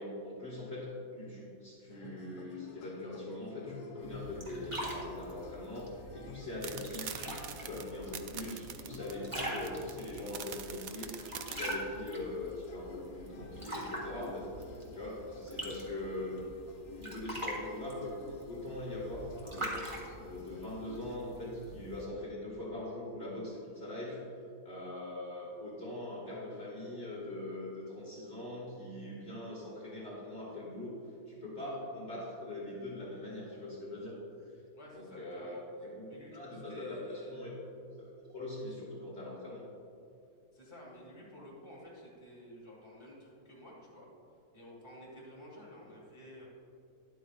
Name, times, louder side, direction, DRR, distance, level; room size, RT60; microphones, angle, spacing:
voice 1, 0.0-7.2 7.5-14.5 14.9-16.5 16.9-18.1 18.5-19.9 20.2-24.2 24.6-31.0 31.3-34.2 34.9-37.5 38.0-39.6, left 1 dB, 45° left, -6 dB, 2.1 m, -42 dB
sound 1, 1.9-21.2, left 3 dB, 75° left, 1.2 m, -50 dB
sound 2, 4.0-22.0, equal, 20° right, 1.6 m, -44 dB
sound 3, 6.6-11.8, right 9 dB, 70° right, 0.9 m, -44 dB
voice 2, 34.7-35.6 36.1-37.6 40.5-44.1 44.5-46.5, equal, 15° left, -5 dB, 2.2 m, -51 dB
12.5 x 11.0 x 2.4 m, 2.5 s
omnidirectional pair, 1.7 m